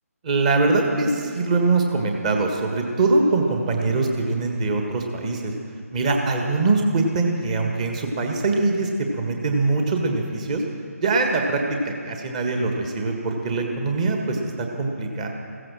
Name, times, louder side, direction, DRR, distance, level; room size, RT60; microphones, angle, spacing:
voice 1, 0.2-5.5 5.9-10.6 11.0-15.3, right 3 dB, 25° right, 2 dB, 1.6 m, -23 dB
15.5 x 14.5 x 6.3 m, 2.3 s
figure-of-eight pair, 150°, 8 cm